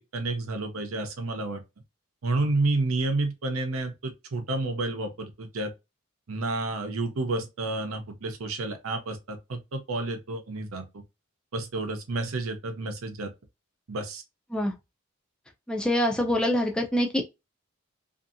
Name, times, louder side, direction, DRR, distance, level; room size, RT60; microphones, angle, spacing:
voice 1, 0.0-1.6 2.2-5.7 6.3-10.9 11.5-13.3 13.9-14.2, right 2 dB, 85° right, 0.7 m, -30 dB
voice 2, 15.7-17.3, equal, 5° left, 0.4 m, -25 dB
2.6 x 2.6 x 2.5 m
head